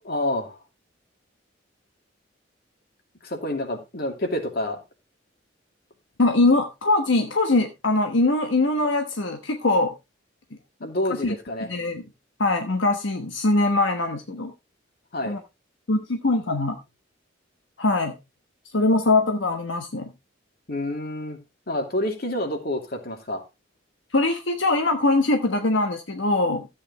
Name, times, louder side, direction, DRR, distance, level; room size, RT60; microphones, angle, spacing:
voice 1, 0.0-0.6 3.2-4.8 10.8-11.7 15.1-15.4 20.7-21.4 21.7-23.4, left 1 dB, 55° left, 4 dB, 2.7 m, -28 dB
voice 2, 6.2-9.9 11.2-11.3 11.7-12.0 12.4-14.5 15.3-15.4 15.9-16.8 17.8-18.2 18.7-20.1 24.1-26.7, left 2 dB, 80° left, 5 dB, 1.2 m, -22 dB
13.0 x 8.7 x 3.1 m, 0.25 s
head